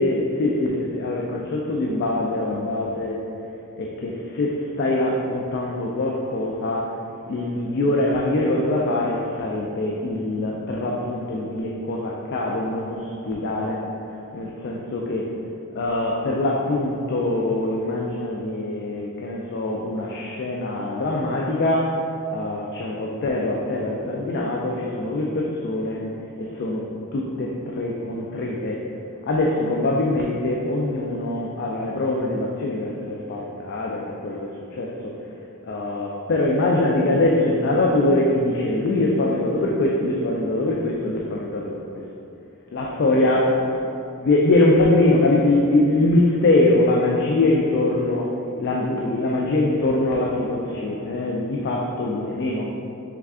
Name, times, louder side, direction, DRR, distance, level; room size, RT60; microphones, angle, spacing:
voice 1, 0.0-3.2 3.7-6.9 7.3-13.8 14.3-15.3 15.7-22.0 22.3-26.0 26.4-26.8 27.1-28.9 29.3-35.2 35.7-41.8 42.7-43.6 44.2-48.3 48.6-52.7, left 2 dB, 50° left, -2 dB, 0.3 m, -23 dB
3.5 x 3.2 x 3.5 m, 2.6 s
head